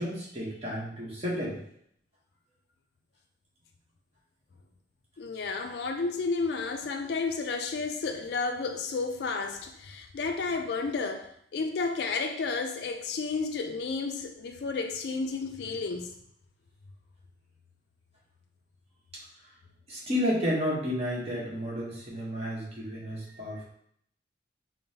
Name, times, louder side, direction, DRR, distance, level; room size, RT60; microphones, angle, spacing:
voice 1, 0.0-1.6 19.9-23.6, equal, 35° right, -5 dB, 1.0 m, -31 dB
voice 2, 5.2-16.1, left 4 dB, 65° left, 5 dB, 0.4 m, -32 dB
5.3 x 2.1 x 2.7 m, 0.70 s
head